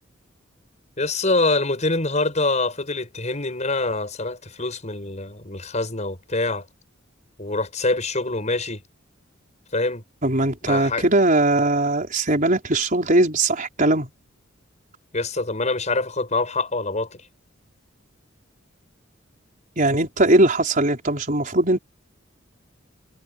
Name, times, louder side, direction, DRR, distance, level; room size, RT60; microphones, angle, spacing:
voice 1, 1.0-6.6 7.4-8.8 9.7-10.0 10.7-11.0 15.1-17.3, left 2 dB, 35° left, 6.2 m, -25 dB
voice 2, 10.2-14.1 19.8-21.8, right 2 dB, 40° right, 4.7 m, -20 dB
head